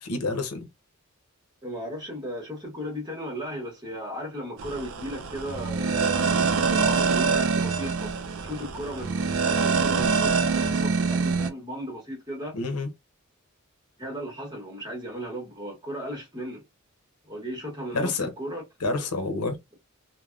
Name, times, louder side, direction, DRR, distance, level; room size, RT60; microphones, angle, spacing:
voice 1, 0.0-0.7 12.5-12.9 17.9-18.3 18.8-19.6, left 3 dB, 90° left, 0.7 m, -28 dB
voice 2, 1.6-6.4 6.7-12.6 14.0-16.6 17.3-18.6 18.9-19.1, equal, 20° right, 1.0 m, -36 dB
sound 1, 4.6-11.5, right 5 dB, 65° right, 0.4 m, -25 dB
3.3 x 2.1 x 2.4 m
head